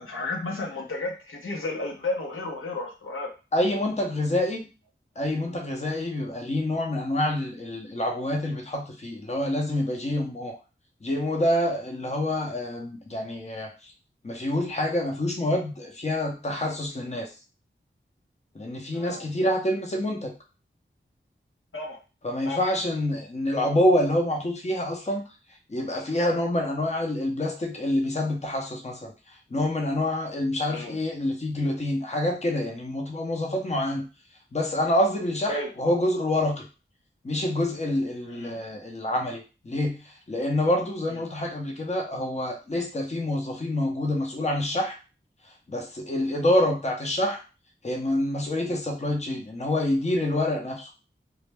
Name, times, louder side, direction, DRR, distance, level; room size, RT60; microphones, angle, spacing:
voice 1, 0.0-3.3 18.9-19.3 21.7-22.0 22.4-22.6 30.7-31.0 35.5-35.7 38.3-38.6 41.1-41.2, left 2 dB, 80° left, -1 dB, 0.7 m, -33 dB
voice 2, 3.5-4.7 5.2-10.5 11.0-13.7 14.2-17.3 18.5-20.3 22.2-25.2 25.7-29.1 29.5-34.0 34.5-36.6 37.2-40.0 40.3-45.0 45.7-47.4 47.8-50.9, left 1 dB, 35° left, 1 dB, 0.7 m, -27 dB
2.1 x 2.0 x 3.3 m, 0.32 s
cardioid pair, 40°, 21 cm